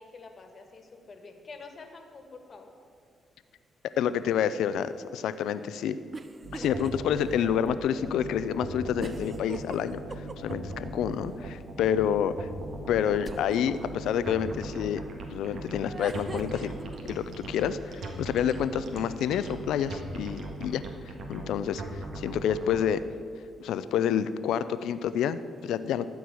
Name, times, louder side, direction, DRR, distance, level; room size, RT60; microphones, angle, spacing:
voice 1, 0.0-2.7, left 4 dB, 45° left, 5 dB, 1.5 m, -47 dB
voice 2, 4.0-6.0 6.5-12.5 12.9-15.0 15.3-16.7 17.0-20.8 21.3-23.0 23.6-26.1, left 9 dB, 85° left, 13 dB, 0.4 m, -28 dB
sound 1, 6.1-6.9 7.3-7.4 9.0-10.7 13.2-13.8 15.8-17.0, right 3 dB, 30° right, 0.5 m, -40 dB
sound 2, 6.4-22.8, right 2 dB, 65° right, 1.6 m, -39 dB
13.0 x 4.7 x 8.5 m, 2.2 s
cardioid pair, 75°, 0 cm